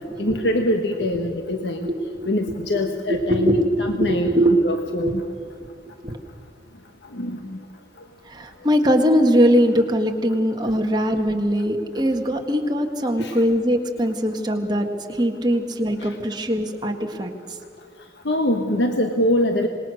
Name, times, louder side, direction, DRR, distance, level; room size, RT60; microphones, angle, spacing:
voice 1, 0.2-1.9 2.3-4.3 4.6-5.2 7.1-7.6 13.2-13.3 16.0-16.1 18.2-19.7, left 1 dB, 75° left, 5 dB, 1.3 m, -23 dB
voice 2, 1.8-2.3 3.1-4.5 5.0-5.1 5.6-5.7 6.0-6.2 8.2-17.3, equal, 25° right, 3 dB, 1.7 m, -21 dB
26.0 x 20.5 x 6.4 m, 2.2 s
head